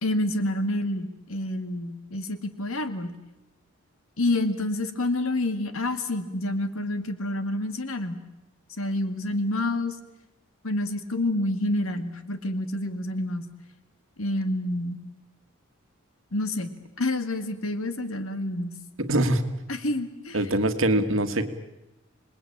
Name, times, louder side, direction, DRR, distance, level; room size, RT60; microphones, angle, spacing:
voice 1, 0.0-3.1 4.2-8.2 8.8-10.0 10.6-13.5 14.2-15.0 16.3-18.7 19.7-20.4, left 1 dB, 80° left, 10 dB, 2.0 m, -28 dB
voice 2, 19.0-19.4 20.3-21.5, right 1 dB, 70° right, 8 dB, 1.8 m, -23 dB
27.0 x 20.0 x 8.7 m, 0.94 s
head